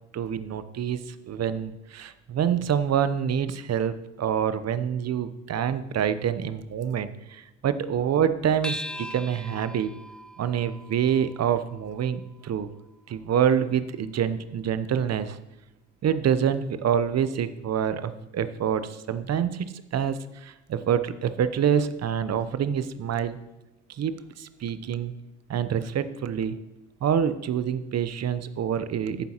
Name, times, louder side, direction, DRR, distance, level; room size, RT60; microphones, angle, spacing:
voice 1, 0.1-9.9 10.4-12.7 13.1-15.4 16.0-19.7 19.9-23.4 24.0-25.1 25.5-26.6 27.0-29.3, right 8 dB, 45° right, 13 dB, 0.9 m, -26 dB
sound 1, 8.6-13.4, left 1 dB, ahead, 0.5 m, -41 dB
14.0 x 9.2 x 3.0 m, 0.94 s
hypercardioid pair, 55°, 37 cm